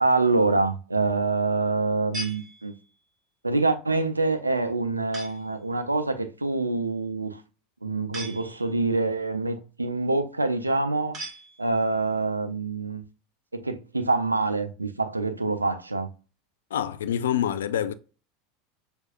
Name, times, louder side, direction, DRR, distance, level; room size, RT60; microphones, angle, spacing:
voice 1, 0.0-2.7 3.4-7.4 7.8-11.2 11.6-13.0 13.5-16.1, right 3 dB, 90° right, 0.4 m, -25 dB
sound 1, 2.1-3.1 5.1-5.6 8.1-9.0 11.1-12.0, right 1 dB, 35° right, 2.2 m, -40 dB
voice 2, 16.7-17.9, left 10 dB, 70° left, 0.3 m, -26 dB
6.1 x 2.6 x 2.5 m
figure-of-eight pair, 80°, 0 cm